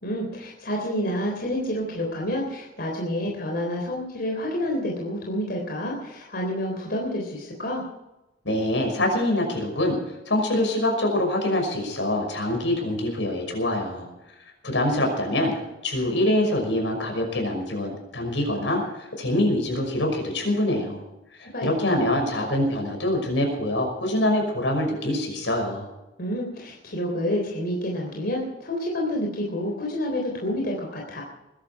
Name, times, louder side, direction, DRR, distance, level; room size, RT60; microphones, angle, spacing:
voice 1, 0.0-7.8 21.4-22.0 26.2-31.2, equal, 55° left, 0 dB, 3.6 m, -29 dB
voice 2, 8.4-14.1 14.6-15.5 15.8-21.0 21.4-25.9, left 1 dB, 85° left, 2 dB, 5.9 m, -25 dB
21.5 x 12.0 x 4.8 m, 0.96 s
head